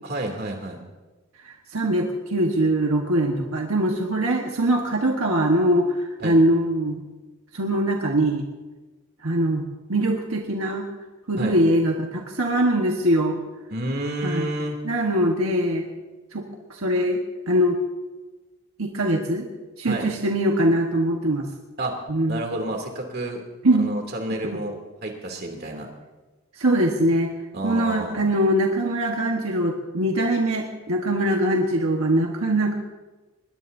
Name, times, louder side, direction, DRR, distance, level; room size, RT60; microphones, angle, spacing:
voice 1, 0.0-0.8 6.2-6.4 11.4-11.6 13.7-14.8 19.8-20.1 21.8-21.9 22.3-23.4 23.8-24.7 25.0-25.9 27.5-28.2, right 1 dB, 45° right, 2 dB, 2.8 m, -30 dB
voice 2, 1.5-7.0 7.5-8.4 9.2-10.9 11.3-13.4 14.2-14.5 14.8-15.9 16.3-17.2 17.5-17.8 18.8-19.5 19.8-21.4 22.1-22.4 23.6-23.9 24.4-24.6 26.6-27.3 27.6-32.7, right 1 dB, 75° right, 1 dB, 1.4 m, -22 dB
21.0 x 20.0 x 2.7 m, 1.2 s
head